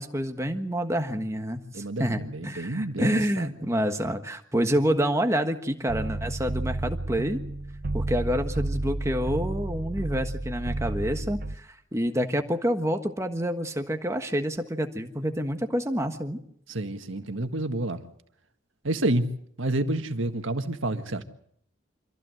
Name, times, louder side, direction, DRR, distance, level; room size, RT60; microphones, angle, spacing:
voice 1, 0.0-7.4 7.9-16.4, equal, 15° right, 1.4 m, -28 dB
voice 2, 1.7-3.5 16.7-18.0 18.8-19.3 19.6-21.2, right 1 dB, 70° right, 1.7 m, -29 dB
sound 1, 5.9-11.6, right 2 dB, 45° right, 0.8 m, -31 dB
25.5 x 15.5 x 7.8 m
head